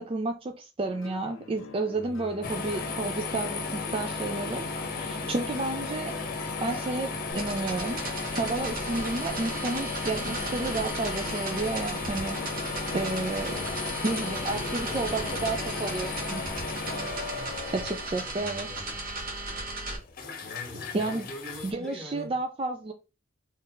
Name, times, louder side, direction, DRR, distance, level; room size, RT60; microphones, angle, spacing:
voice 1, 0.0-4.6 4.9-6.1 6.6-8.0 8.3-12.4 12.9-13.6 14.0-16.5 17.7-18.7 20.9-21.3 21.6-22.9, right 2 dB, 30° right, 0.4 m, -31 dB
sound 1, 0.9-18.0, left 4 dB, 80° left, 0.6 m, -46 dB
voice 2, 1.9-2.8 13.5-13.8 14.5-15.9 18.4-19.0 20.4-22.4, equal, 5° left, 1.2 m, -43 dB
sound 2, 2.4-21.7, left 3 dB, 45° left, 0.9 m, -35 dB
sound 3, 7.3-20.0, right 2 dB, 45° right, 1.2 m, -37 dB
3.9 x 2.5 x 3.9 m
head